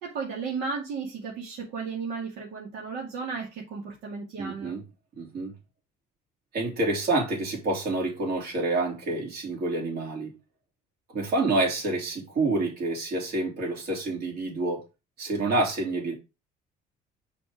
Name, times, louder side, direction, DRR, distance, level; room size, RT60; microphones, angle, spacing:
voice 1, 0.0-4.7, right 5 dB, 90° right, 2.4 m, -34 dB
voice 2, 4.4-4.8 5.2-5.5 6.5-10.4 11.1-14.8 15.2-16.1, right 2 dB, 65° right, 3.6 m, -28 dB
6.2 x 4.5 x 5.0 m
cardioid pair, 110°, 17 cm